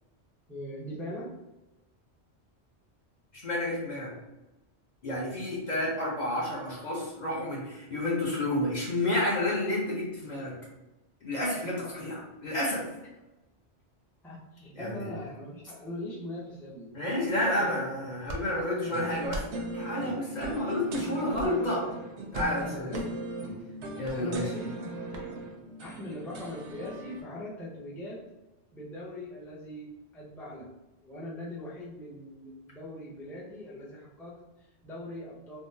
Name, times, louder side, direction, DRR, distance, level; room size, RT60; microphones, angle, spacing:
voice 1, 0.5-1.3 14.2-17.0 17.5-17.8 18.5-19.6 19.9-20.3 22.5-23.2 24.1-25.3 25.8-28.2 28.7-30.7 31.0-35.6, left 1 dB, ahead, -6 dB, 0.5 m, -41 dB
voice 2, 3.3-4.1 5.0-10.5 11.2-12.8 14.7-15.1 16.9-19.4 19.7-21.9 22.3-22.9 23.9-24.5, left 1 dB, 45° left, -5 dB, 0.8 m, -30 dB
sound 1, 18.2-18.4 19.2-19.5 20.4-20.6 21.3-21.6 22.3-22.5 22.9-23.1 24.0-24.2 25.1-25.3, right 1 dB, 50° right, 0.6 m, -38 dB
sound 2, 18.8-27.2, right 1 dB, 75° right, 0.9 m, -39 dB
3.6 x 2.0 x 2.7 m, 1.0 s
omnidirectional pair, 1.2 m